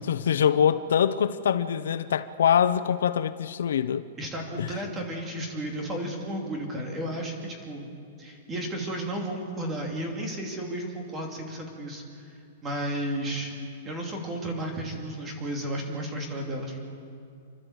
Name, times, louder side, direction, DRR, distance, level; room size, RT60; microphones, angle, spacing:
voice 1, 0.1-4.0 4.6-4.7, left 8 dB, 85° left, 12 dB, 0.9 m, -24 dB
voice 2, 4.2-7.9 8.2-13.5 13.8-16.8, right 1 dB, 15° right, 1 dB, 2.7 m, -33 dB
29.0 x 12.0 x 8.1 m, 2.4 s
supercardioid pair, 175°, 0 cm